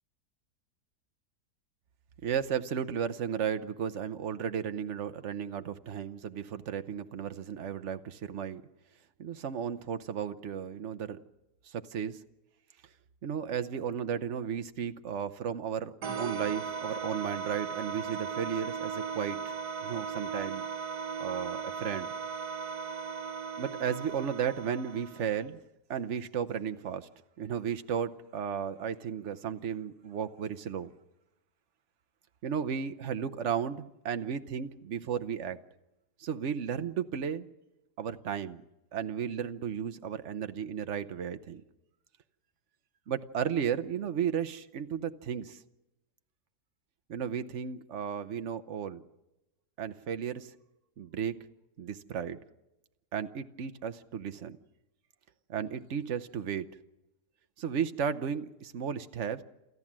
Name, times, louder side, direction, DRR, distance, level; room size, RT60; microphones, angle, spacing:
voice 1, 2.2-8.6 9.2-11.2 11.6-12.2 13.2-19.5 19.8-20.7 21.2-22.1 23.6-25.6 25.9-27.1 27.4-30.9 32.4-35.6 36.2-37.5 38.0-38.6 38.9-41.6 43.1-45.6 47.1-49.0 49.8-50.5 51.0-51.4 51.8-52.4 53.1-54.6 55.5-56.7 57.6-59.4, right 8 dB, 50° right, 10 dB, 1.2 m, -34 dB
sound 1, 16.0-25.5, right 6 dB, 85° right, 1.8 m, -37 dB
28.5 x 14.0 x 7.5 m, 0.95 s
omnidirectional pair, 1.7 m